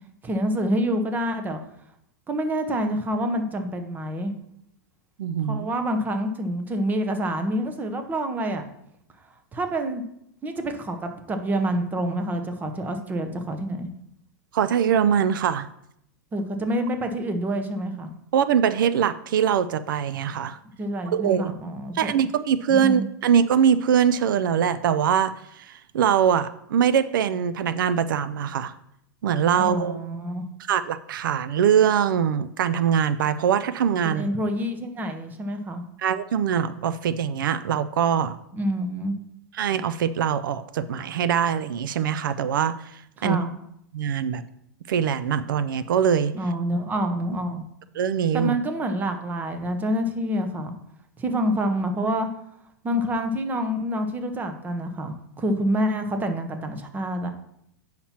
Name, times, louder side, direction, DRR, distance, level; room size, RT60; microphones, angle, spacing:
voice 1, 0.2-1.6 2.3-4.3 5.5-8.6 9.5-10.0 10.4-13.9 16.3-18.1 20.8-22.1 22.7-23.1 29.5-30.5 34.0-35.8 38.5-39.1 43.2-43.5 46.3-47.6 48.3-50.8 51.2-52.3 52.8-57.3, equal, 15° right, 7 dB, 0.8 m, -27 dB
voice 2, 5.2-5.7 14.5-15.7 18.3-20.6 21.1-21.5 21.9-28.7 29.2-30.0 30.7-34.2 36.0-38.4 39.6-42.9 43.2-43.4 43.9-44.4 44.9-46.3 48.0-48.5, right 8 dB, 85° right, 14 dB, 0.4 m, -22 dB
8.6 x 5.7 x 2.9 m, 0.76 s
hypercardioid pair, 135°, 11 cm